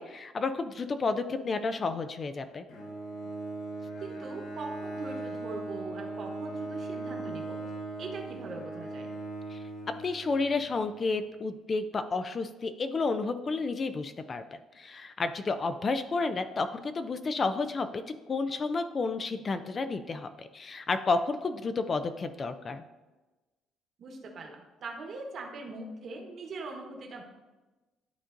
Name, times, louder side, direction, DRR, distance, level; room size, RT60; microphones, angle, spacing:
voice 1, 0.0-2.6 9.5-9.6 10.0-18.0 18.3-22.8, left 3 dB, 30° left, 9 dB, 0.3 m, -31 dB
Bowed string instrument, 2.7-10.9, right 2 dB, 60° left, 1.1 m, -39 dB
voice 2, 4.0-7.6 8.0-9.1 24.0-27.2, right 3 dB, 45° right, 2 dB, 1.1 m, -41 dB
11.5 x 3.8 x 2.5 m, 1.2 s
cardioid pair, 140°, 0 cm